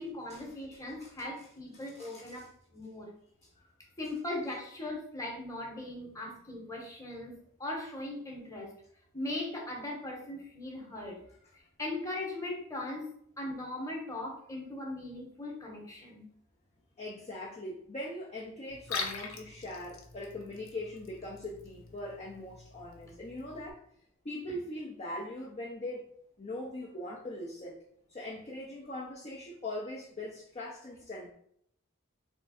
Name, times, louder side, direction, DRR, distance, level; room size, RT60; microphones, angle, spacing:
voice 1, 0.0-2.4 2.7-3.1 4.0-7.3 7.6-8.7 9.1-11.2 11.8-13.1 13.4-16.3, left 1 dB, 15° left, -1 dB, 1.1 m, -39 dB
voice 2, 1.7-2.5 3.6-3.7 11.3-11.4 17.0-23.8 24.2-26.1 26.4-27.7 28.1-31.3, left 1 dB, 30° left, -4 dB, 0.5 m, -41 dB
Liquid, 18.7-23.7, left 5 dB, 80° left, 0.8 m, -43 dB
3.6 x 3.1 x 4.2 m, 0.68 s
head